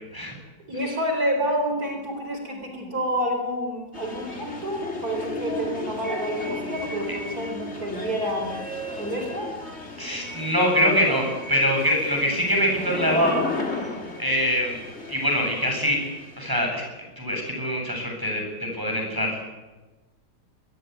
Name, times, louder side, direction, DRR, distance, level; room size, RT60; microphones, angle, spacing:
voice 1, 0.7-8.5 9.0-9.5, equal, 50° right, 3 dB, 4.9 m, -28 dB
sound 1, 3.9-16.6, left 2 dB, 35° left, 3.6 m, -34 dB
voice 2, 10.0-13.4 14.2-16.0 16.4-16.8 17.2-19.4, equal, 10° right, 0 dB, 7.6 m, -24 dB
23.5 x 20.5 x 9.6 m, 1.2 s
omnidirectional pair, 2.0 m